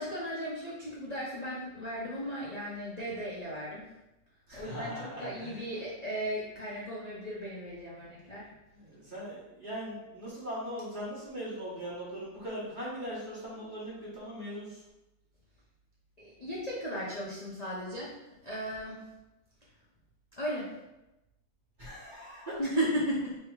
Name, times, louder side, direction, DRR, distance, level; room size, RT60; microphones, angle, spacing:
voice 1, 0.0-3.9 4.5-8.5 16.2-18.2 18.4-19.0 20.4-20.7 22.6-23.4, equal, 85° left, -7 dB, 0.3 m, -35 dB
voice 2, 4.5-5.6 8.7-14.8 21.8-22.6, equal, 30° right, -7 dB, 1.1 m, -40 dB
3.3 x 2.9 x 4.6 m, 0.97 s
omnidirectional pair, 2.0 m